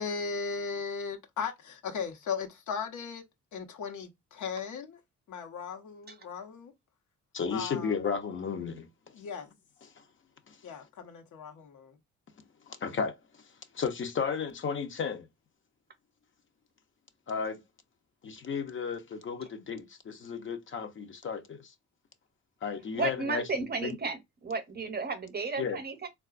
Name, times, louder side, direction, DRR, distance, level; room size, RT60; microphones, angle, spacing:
voice 1, 0.0-3.2 3.5-5.0 5.3-6.7 7.5-7.9 9.1-9.5 10.6-11.9, left 6 dB, 70° left, 1.0 m, -37 dB
voice 2, 7.3-8.9 10.5-10.6 12.7-13.1 13.7-15.3 17.3-17.6 18.2-21.7 22.6-23.4 23.8-24.0 25.6-25.8, left 6 dB, 40° left, 0.6 m, -33 dB
voice 3, 22.9-26.1, right 4 dB, 30° right, 0.7 m, -33 dB
3.7 x 2.3 x 2.4 m
cardioid pair, 90°, 30 cm